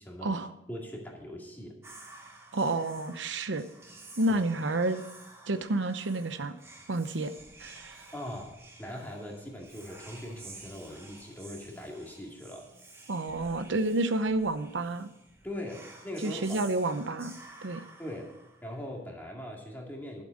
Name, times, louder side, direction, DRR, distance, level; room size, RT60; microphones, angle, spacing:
voice 1, 0.0-0.3 0.7-1.7 4.3-4.4 8.1-12.7 15.4-16.6 18.0-18.3 18.6-20.2, left 1 dB, 10° left, -1 dB, 2.3 m, -41 dB
Whispering, 1.8-19.0, right 2 dB, 15° right, 1.4 m, -51 dB
voice 2, 2.5-3.6 4.2-5.0 5.5-6.5 6.9-7.3 7.6-8.0 13.1-15.1 16.2-17.8, right 2 dB, 85° right, 10 dB, 0.8 m, -30 dB
12.0 x 7.6 x 6.4 m, 0.85 s
head